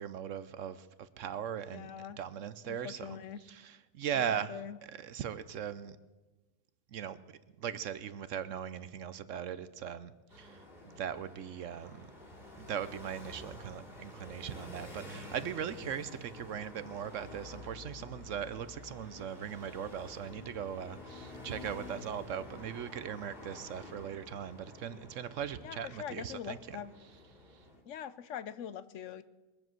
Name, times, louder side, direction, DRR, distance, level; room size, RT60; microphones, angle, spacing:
voice 1, 0.0-1.9 2.2-3.2 3.5-4.5 4.9-6.0 6.9-7.2 7.6-12.1 12.6-26.8, right 8 dB, 65° right, 14 dB, 0.9 m, -39 dB
voice 2, 1.7-2.2 2.7-3.4 4.1-4.8 25.6-26.9 27.8-29.2, left 8 dB, 60° left, 15 dB, 1.0 m, -43 dB
sound 1, 10.3-27.8, left 1 dB, 35° left, 2.8 m, -49 dB
22.5 x 7.6 x 7.6 m, 1.1 s
omnidirectional pair, 1.6 m